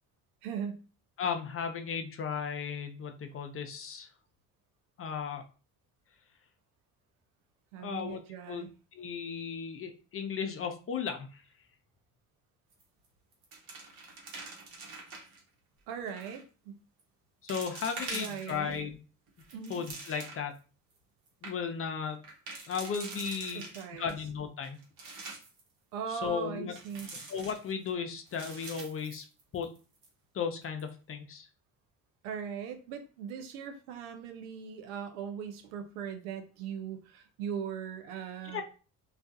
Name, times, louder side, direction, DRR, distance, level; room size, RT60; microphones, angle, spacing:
voice 1, 0.4-0.8 7.7-8.7 15.9-16.8 18.1-18.9 19.5-19.8 23.5-24.1 25.9-27.1 32.2-38.6, right 7 dB, 85° right, 7 dB, 0.5 m, -39 dB
voice 2, 1.2-4.1 5.0-5.4 7.8-8.2 8.5-11.4 17.4-19.0 19.7-20.5 21.4-22.2 22.7-23.6 23.9-24.8 26.1-26.7 27.3-29.3 29.5-29.7 30.3-31.5 38.4-38.6, left 6 dB, 35° left, 6 dB, 0.5 m, -35 dB
sound 1, 12.7-13.1 13.3-15.4 16.1-16.4 17.0-17.1 17.5-18.8 19.3-20.6 21.0-21.1 21.3-21.5 22.2-24.1 24.6-25.6 26.8-27.9 28.3-29.8 30.0-30.1 30.6-30.9, right 3 dB, 70° right, 1.0 m, -44 dB
2.3 x 2.3 x 2.6 m, 0.35 s
supercardioid pair, 70°, 38 cm